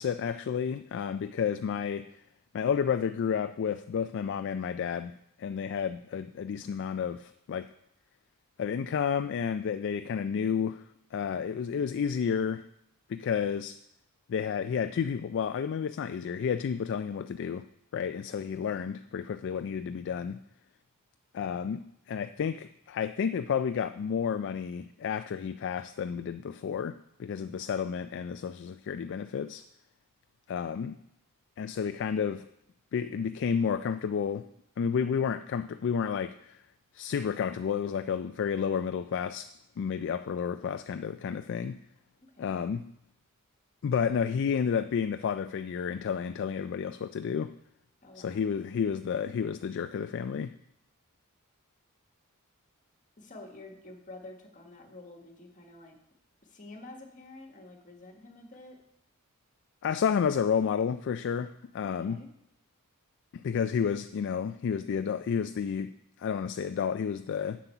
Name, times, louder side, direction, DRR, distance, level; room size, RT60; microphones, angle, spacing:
voice 1, 0.0-2.1 2.5-7.7 8.6-10.8 11.1-12.6 13.1-13.8 14.3-17.7 17.9-20.4 21.3-29.6 30.5-31.0 31.6-32.5 32.9-34.5 34.8-36.6 36.9-39.5 39.8-41.8 42.4-42.9 43.8-47.5 48.2-50.5 59.8-62.2 63.3-67.6, left 7 dB, 55° left, 10 dB, 0.3 m, -31 dB
voice 2, 27.4-27.7 42.4-42.6 48.0-48.5 53.2-56.0 56.4-58.8 61.8-62.3, left 2 dB, 35° left, 3 dB, 1.6 m, -49 dB
7.8 x 7.4 x 5.6 m, 0.79 s
head